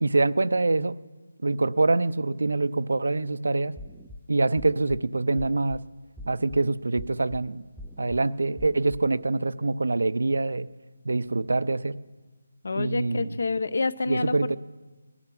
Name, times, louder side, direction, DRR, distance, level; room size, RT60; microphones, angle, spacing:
voice 1, 0.0-0.9 1.4-3.8 4.3-5.8 6.3-7.6 8.0-10.7 11.0-12.0 12.8-13.3 14.1-14.6, right 3 dB, 85° right, 15 dB, 0.7 m, -25 dB
sound 1, 3.8-4.2 4.6-5.0 5.4-5.8 6.2-6.6 7.0-7.4 7.8-8.2 8.6-9.0, left 1 dB, ahead, 0.5 m, -43 dB
voice 2, 12.6-14.6, left 3 dB, 60° left, 17 dB, 0.7 m, -28 dB
19.0 x 12.5 x 6.1 m, 1.3 s
hypercardioid pair, 175°, 0 cm